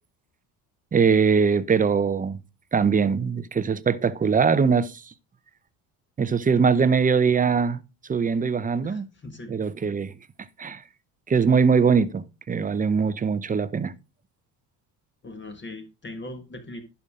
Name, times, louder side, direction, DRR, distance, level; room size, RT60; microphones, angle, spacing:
voice 1, 0.9-2.4 2.7-5.0 6.2-7.8 8.1-9.1 9.5-10.1 10.6-10.8 11.3-13.9, right 5 dB, 20° right, 0.6 m, -22 dB
voice 2, 8.8-9.5 15.2-16.8, left 2 dB, 30° left, 1.7 m, -39 dB
11.0 x 5.7 x 3.6 m
cardioid pair, 100°, 39 cm